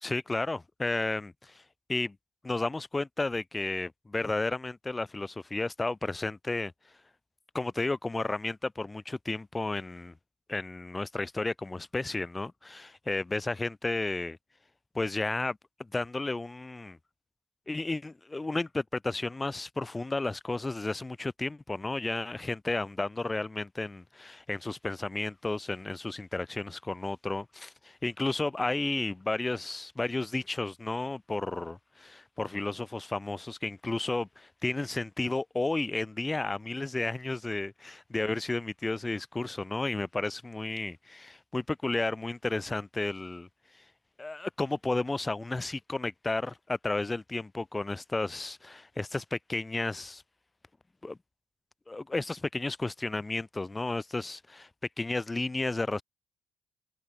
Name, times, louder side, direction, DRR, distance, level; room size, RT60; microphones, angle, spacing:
voice 1, 0.0-1.6 1.9-2.2 2.4-6.7 7.5-10.1 10.5-14.4 14.9-17.0 17.7-43.5 44.2-50.2 51.0-51.2 51.9-54.7 55.0-56.0, left 2 dB, 20° left, 1.0 m, -32 dB
cardioid pair, 90°, 0 cm